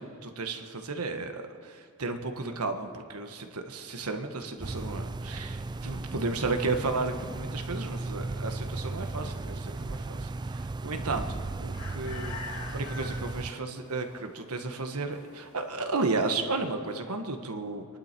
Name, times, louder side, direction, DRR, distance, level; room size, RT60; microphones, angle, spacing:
voice 1, 0.0-12.4 12.7-17.9, right 3 dB, 90° right, 6 dB, 1.3 m, -33 dB
sound 1, 4.6-13.5, right 2 dB, 20° right, 0.3 m, -36 dB
sound 2, 9.2-16.6, left 3 dB, 75° left, 2.2 m, -47 dB
26.5 x 11.5 x 4.5 m, 2.5 s
head